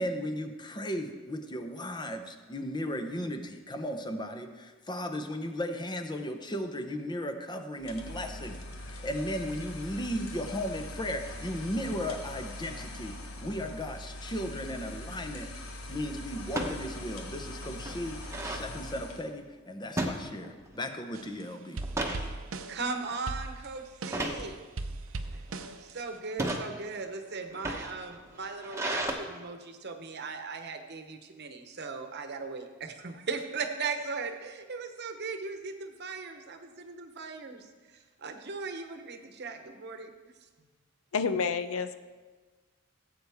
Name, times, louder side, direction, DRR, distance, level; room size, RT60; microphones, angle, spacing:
voice 1, 0.0-13.2 13.4-18.2 18.4-21.8, equal, 20° left, 7 dB, 0.8 m, -36 dB
sound 1, 7.8-19.3, left 1 dB, 90° left, 1.4 m, -42 dB
sound 2, 14.7-15.1 16.5-16.8 17.3-17.4 17.6-18.7 20.0-20.8 21.1-21.3 21.7-22.3 22.9-23.1 24.1-24.5 25.2-25.7 26.2-26.7 27.4-29.1, right 1 dB, 15° right, 1.1 m, -34 dB
sound 3, 21.1-21.4 21.8-24.4 24.8-26.2, right 2 dB, 70° right, 0.7 m, -38 dB
voice 2, 22.7-24.7 25.3-25.4 25.8-40.1, right 4 dB, 55° right, 6 dB, 1.0 m, -38 dB
voice 3, 41.1-41.9, left 5 dB, 75° left, 10 dB, 0.6 m, -29 dB
17.0 x 8.2 x 3.6 m, 1.4 s
head